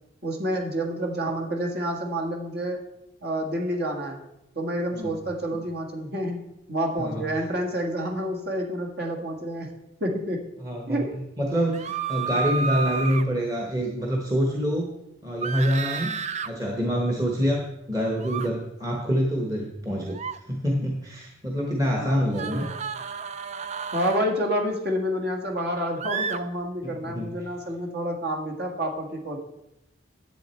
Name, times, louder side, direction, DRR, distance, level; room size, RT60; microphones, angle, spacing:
voice 1, 0.2-2.8 3.2-4.2 4.6-9.7 10.0-10.5 10.9-11.2 22.0-22.7 23.9-29.4, equal, 55° right, 2 dB, 1.8 m, -29 dB
voice 2, 10.6-14.9 15.2-16.1 16.4-20.2 20.5-22.7 26.8-27.4, equal, 20° right, 0 dB, 1.1 m, -26 dB
sound 1, 11.7-13.2 15.4-16.5 18.2-18.5 20.1-20.4 22.3-24.2 26.0-26.4, right 5 dB, 35° right, 0.4 m, -31 dB
10.5 x 8.3 x 4.4 m, 0.88 s
head